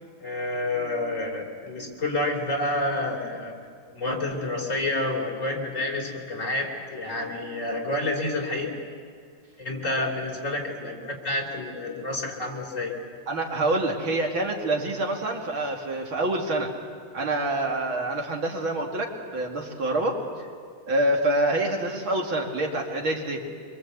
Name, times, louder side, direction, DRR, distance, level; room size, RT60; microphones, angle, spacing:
voice 1, 0.2-3.5 3.9-8.8 9.6-13.0, left 2 dB, 35° left, 0 dB, 3.9 m, -29 dB
voice 2, 13.3-16.7 17.1-20.2 20.9-23.4, right 1 dB, 65° right, 1 dB, 3.2 m, -26 dB
26.0 x 24.0 x 8.3 m, 2.2 s
omnidirectional pair, 2.4 m